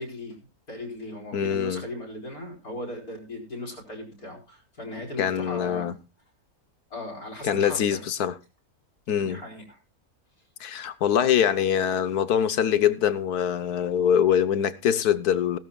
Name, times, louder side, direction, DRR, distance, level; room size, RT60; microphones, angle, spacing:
voice 1, 0.0-6.0 6.9-8.0 9.2-9.6, left 1 dB, 75° left, 5.0 m, -38 dB
voice 2, 1.3-1.8 5.2-5.9 7.4-8.3 9.1-9.4 10.6-15.6, left 9 dB, 90° left, 1.5 m, -23 dB
18.5 x 13.0 x 2.4 m
omnidirectional pair, 1.6 m